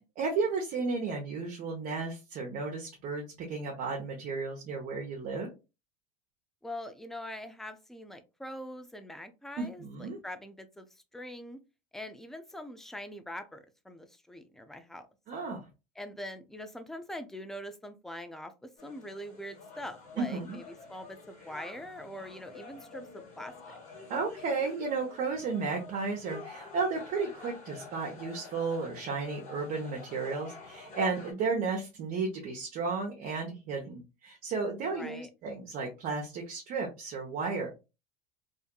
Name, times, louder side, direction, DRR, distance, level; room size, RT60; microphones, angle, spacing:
voice 1, 0.2-5.5 9.6-10.2 15.3-15.6 20.2-20.6 24.1-37.7, right 4 dB, 45° right, 0 dB, 0.7 m, -33 dB
voice 2, 6.6-11.6 11.9-15.1 16.0-23.8 34.9-35.3, left 1 dB, ahead, 9 dB, 0.3 m, -43 dB
sound 1, 18.8-31.3, left 4 dB, 35° left, 1.5 m, -49 dB
2.6 x 2.5 x 2.2 m, 0.28 s
supercardioid pair, 110°, 21 cm